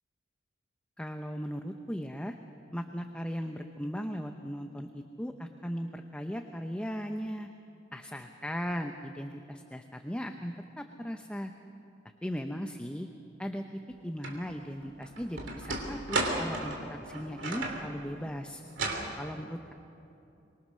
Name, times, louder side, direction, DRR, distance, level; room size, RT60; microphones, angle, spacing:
voice 1, 1.0-2.4 2.7-7.5 7.9-11.5 12.2-13.1 13.4-18.6 19.2-19.7, equal, 5° left, 5 dB, 0.7 m, -37 dB
sound 1, 14.2-14.4 14.8-17.9 18.7-19.1, right 2 dB, 70° right, 3.1 m, -33 dB
24.5 x 22.0 x 6.4 m, 2.8 s
head